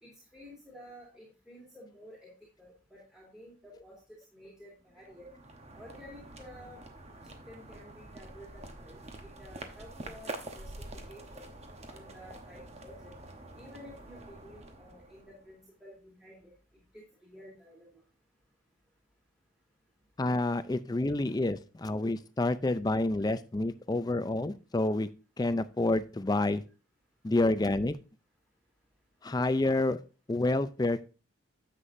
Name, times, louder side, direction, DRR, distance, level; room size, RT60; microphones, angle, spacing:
voice 1, 0.0-2.3 2.6-4.0 4.3-5.3 5.7-6.8 7.2-11.5 11.9-13.2 13.5-16.5 16.9-18.0, equal, 5° right, -3 dB, 2.1 m, -52 dB
sound 1, 4.9-15.6, right 2 dB, 35° right, 1.0 m, -47 dB
voice 2, 20.2-25.1 25.4-26.6 27.2-28.0 29.2-30.0 30.3-31.1, left 2 dB, 20° left, 12 dB, 0.4 m, -28 dB
9.8 x 7.6 x 2.6 m, 0.33 s
head